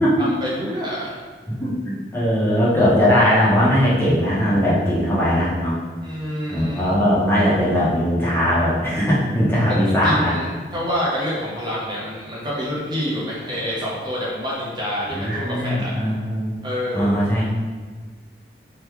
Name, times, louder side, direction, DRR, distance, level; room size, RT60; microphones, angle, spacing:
voice 1, 0.2-1.2 6.0-6.9 9.7-15.9 16.6-17.2, equal, 25° right, -6 dB, 0.7 m, -27 dB
voice 2, 1.6-5.8 6.5-10.3 15.1-16.5 16.9-17.5, equal, 15° left, -8 dB, 0.7 m, -19 dB
3.0 x 2.2 x 3.4 m, 1.5 s
head